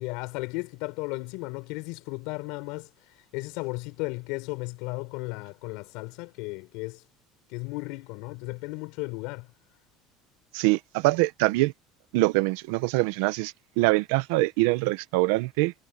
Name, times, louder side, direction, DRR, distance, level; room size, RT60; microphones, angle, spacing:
voice 1, 0.0-7.0 7.5-9.5, left 25 dB, 70° left, 4.7 m, -35 dB
voice 2, 10.5-11.7 12.1-15.7, right 21 dB, 80° right, 1.1 m, -24 dB
cardioid pair, 170°, 0 cm